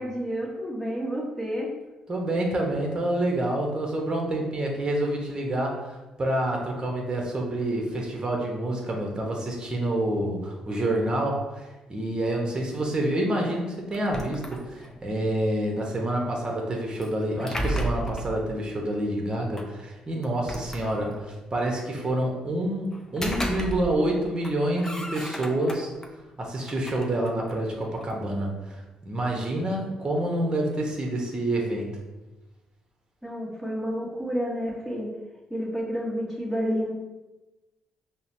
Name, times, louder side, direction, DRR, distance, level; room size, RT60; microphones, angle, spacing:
voice 1, 0.0-1.7 29.3-29.7 33.2-35.1 35.5-36.9, equal, ahead, -3 dB, 1.3 m, -30 dB
voice 2, 2.1-25.9 26.4-28.8 29.0-31.9, right 1 dB, 30° right, 0 dB, 1.0 m, -28 dB
sound 1, 13.9-15.0 17.0-18.3 19.6-19.7 20.2-21.3 22.9-24.1 24.4-26.1 26.6-28.2, right 1 dB, 20° left, 0.7 m, -34 dB
5.5 x 2.1 x 2.7 m, 1.1 s
hypercardioid pair, 55°, 3 cm